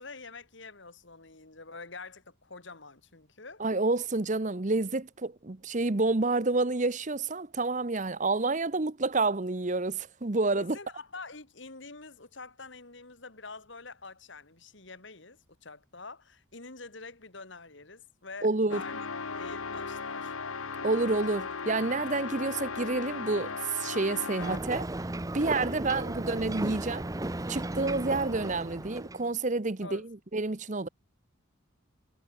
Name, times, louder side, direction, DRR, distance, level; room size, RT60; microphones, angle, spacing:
voice 1, 0.0-3.6 10.6-18.9 19.3-20.3 25.7-26.0 29.8-30.1, left 3 dB, 60° left, 2.3 m, -46 dB
voice 2, 3.6-10.8 18.4-18.8 20.8-24.9 25.3-27.1 27.5-30.9, right 3 dB, 35° right, 0.9 m, -29 dB
sound 1, 18.7-24.8, left 4 dB, 80° left, 1.5 m, -37 dB
Ocean, 24.4-29.3, right 1 dB, 15° right, 0.7 m, -35 dB
head